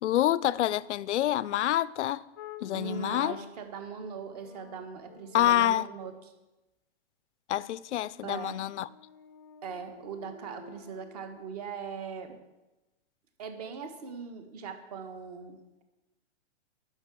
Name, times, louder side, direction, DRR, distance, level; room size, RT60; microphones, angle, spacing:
voice 1, 0.0-2.2 2.6-3.4 5.3-5.9 7.5-8.9, left 13 dB, 85° left, 0.5 m, -27 dB
sound 1, 2.4-3.8 4.3-6.1 8.2-11.6, left 6 dB, 20° left, 0.5 m, -50 dB
voice 2, 2.7-6.3 8.2-8.6 9.6-12.4 13.4-15.8, right 6 dB, 35° right, 1.3 m, -40 dB
11.5 x 5.7 x 7.5 m
hypercardioid pair, 170°, 34 cm